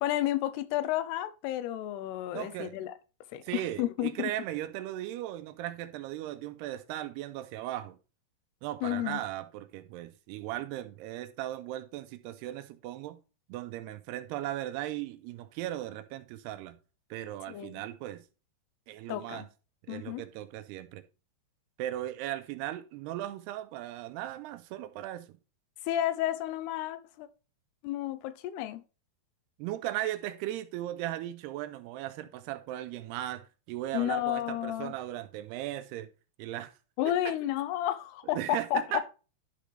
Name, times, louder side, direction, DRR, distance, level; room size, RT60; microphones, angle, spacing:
voice 1, 0.0-2.9 3.3-4.3 8.8-9.2 17.5-17.9 19.1-19.5 19.9-20.2 25.9-27.3 27.8-28.8 33.9-34.9 37.0-38.8, left 13 dB, 85° left, 2.7 m, -31 dB
voice 2, 2.3-2.8 3.4-8.0 8.6-13.2 13.5-16.8 17.1-18.2 18.9-19.4 19.9-21.0 21.8-25.4 29.6-36.1 36.4-36.7 37.1-37.3 38.3-39.0, right 13 dB, 85° right, 2.7 m, -37 dB
11.5 x 5.1 x 3.3 m
omnidirectional pair, 4.7 m